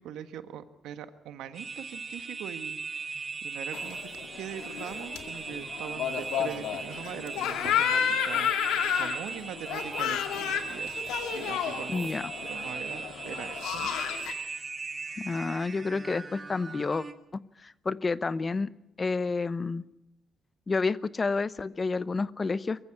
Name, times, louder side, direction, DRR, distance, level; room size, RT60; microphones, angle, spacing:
voice 1, 0.0-4.0 4.3-11.0 11.3-14.0, right 10 dB, 85° right, 10 dB, 1.4 m, -42 dB
sound 1, 1.5-17.1, right 4 dB, 35° right, 1.7 m, -39 dB
sound 2, 3.7-14.3, left 8 dB, 90° left, 2.2 m, -31 dB
voice 2, 11.9-12.3 15.2-17.1 17.6-18.7 19.0-19.8 20.7-22.8, left 4 dB, 30° left, 17 dB, 0.8 m, -29 dB
22.5 x 15.0 x 9.5 m, 0.86 s
cardioid pair, 90°, 0 cm